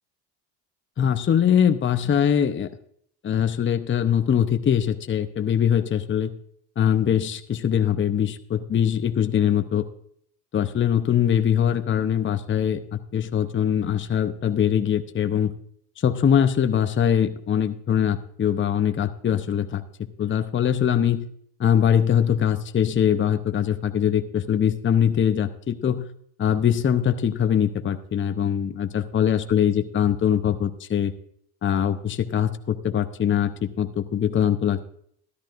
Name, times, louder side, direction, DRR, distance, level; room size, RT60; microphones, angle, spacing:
voice 1, 1.0-2.7 3.2-6.3 6.8-9.9 10.5-15.5 16.0-19.8 20.2-21.2 21.6-26.1 26.4-31.1 31.6-34.8, left 9 dB, 25° left, 9 dB, 0.7 m, -22 dB
13.0 x 11.5 x 2.5 m, 0.65 s
supercardioid pair, 80°, 48 cm